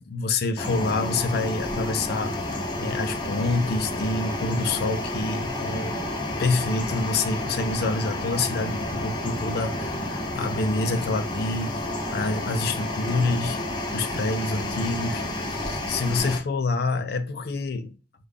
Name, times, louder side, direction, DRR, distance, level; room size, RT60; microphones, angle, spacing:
voice 1, 0.1-6.0 6.4-13.6 13.9-18.0, left 3 dB, 60° left, 0.4 m, -27 dB
sound 1, 0.6-16.4, left 1 dB, 25° left, 0.7 m, -30 dB
3.4 x 2.3 x 3.5 m
head